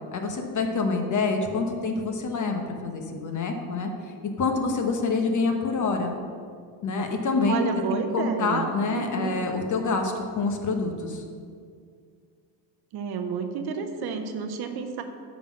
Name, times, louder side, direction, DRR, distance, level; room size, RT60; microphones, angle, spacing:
voice 1, 0.1-3.9 4.4-6.1 6.8-7.7 8.1-11.2, left 4 dB, 40° left, 4 dB, 1.1 m, -26 dB
voice 2, 7.5-9.4 12.9-15.0, right 6 dB, 55° right, 7 dB, 0.9 m, -31 dB
8.5 x 4.1 x 6.2 m, 2.2 s
supercardioid pair, 95°, 46 cm